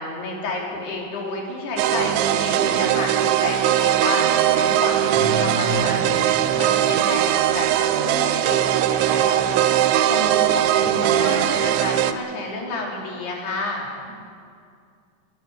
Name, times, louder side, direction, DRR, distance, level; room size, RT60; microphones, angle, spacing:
voice 1, 0.0-13.9, left 2 dB, 60° left, -1 dB, 5.6 m, -30 dB
sound 1, 1.8-12.1, right 11 dB, 85° right, 3.2 m, -20 dB
voice 2, 5.1-6.0 10.7-11.3, equal, 65° right, -5 dB, 9.6 m, -30 dB
20.5 x 20.5 x 7.9 m, 2.3 s
omnidirectional pair, 5.2 m